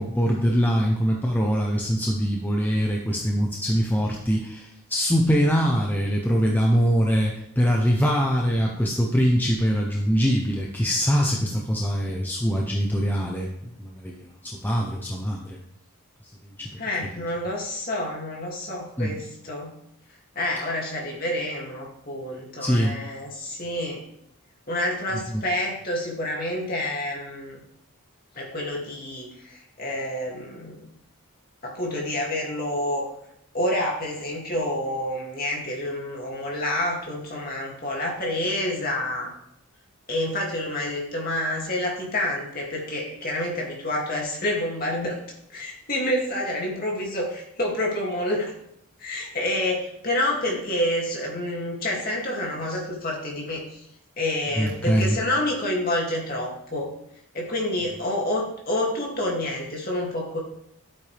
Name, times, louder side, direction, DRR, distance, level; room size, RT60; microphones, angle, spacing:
voice 1, 0.0-15.6 16.2-16.8 19.0-19.1 22.6-23.0 25.3-25.4 54.6-55.2, equal, 10° left, -1 dB, 0.8 m, -23 dB
voice 2, 16.8-19.7 20.3-24.0 24.7-27.6 28.3-30.9 31.6-33.1 33.5-39.3 40.1-45.2 45.5-48.5 49.0-53.8 54.2-56.9 57.3-60.4, left 1 dB, 40° left, -2 dB, 2.6 m, -28 dB
12.0 x 8.6 x 3.5 m, 0.77 s
head